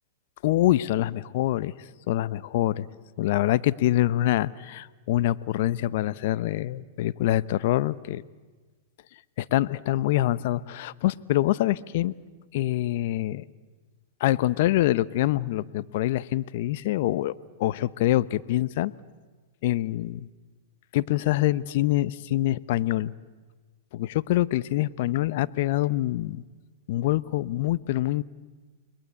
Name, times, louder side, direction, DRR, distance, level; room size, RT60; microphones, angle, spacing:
voice 1, 0.4-1.7 2.1-2.9 3.2-8.2 9.4-12.1 12.5-13.4 14.2-17.3 17.6-18.9 19.6-20.3 20.9-23.1 23.9-26.4 26.9-28.2, left 15 dB, 60° left, 18 dB, 0.8 m, -25 dB
29.5 x 21.5 x 8.3 m, 1.4 s
hypercardioid pair, 110°, 0 cm